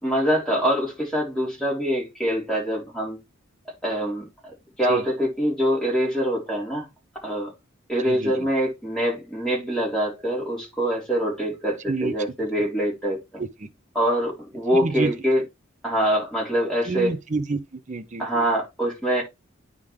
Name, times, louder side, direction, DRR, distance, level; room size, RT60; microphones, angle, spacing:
voice 1, 0.0-3.2 3.8-6.9 7.2-7.5 7.9-13.4 13.9-15.4 15.8-17.1 18.2-19.2, equal, 5° left, 3.9 m, -24 dB
voice 2, 8.0-8.5 11.9-12.1 13.4-13.7 14.8-15.1 16.9-18.4, right 3 dB, 40° right, 0.7 m, -28 dB
9.3 x 3.7 x 4.8 m
head